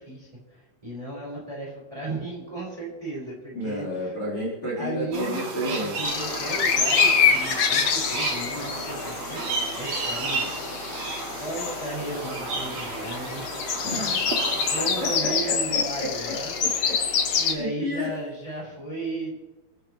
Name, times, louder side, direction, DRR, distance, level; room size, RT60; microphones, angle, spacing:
voice 1, 0.0-4.2 4.8-10.6 11.4-13.5 13.8-14.1 14.7-16.5 17.4-19.4, right 2 dB, 10° right, -5 dB, 5.9 m, -35 dB
voice 2, 3.5-5.9 13.8-14.2 14.8-16.9 17.5-18.1, left 1 dB, 35° left, -4 dB, 4.8 m, -31 dB
sound 1, 5.1-15.2, right 3 dB, 70° right, 4.4 m, -32 dB
sound 2, 6.0-17.5, left 6 dB, 60° left, 1.8 m, -26 dB
27.5 x 10.5 x 3.3 m, 1.1 s
omnidirectional pair, 4.4 m